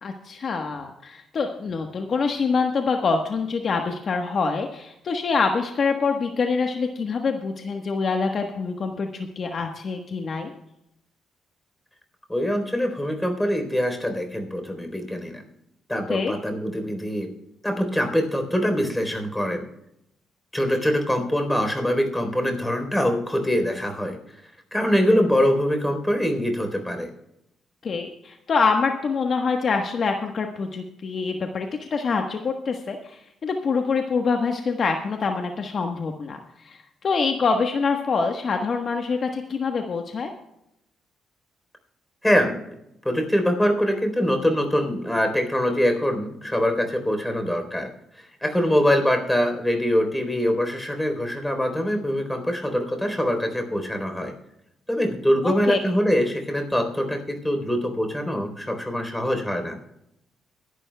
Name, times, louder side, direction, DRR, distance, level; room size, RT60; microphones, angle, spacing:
voice 1, 0.0-10.5 16.1-16.4 27.8-40.3 55.4-55.8, left 4 dB, 50° left, 4 dB, 1.3 m, -25 dB
voice 2, 12.3-15.4 15.9-17.3 17.6-19.7 20.5-24.4 24.7-27.1 42.2-42.6 43.0-47.9 48.1-54.3 54.9-59.8, equal, 5° left, 5 dB, 3.8 m, -23 dB
23.0 x 11.5 x 2.3 m, 0.81 s
cardioid pair, 90°, 0 cm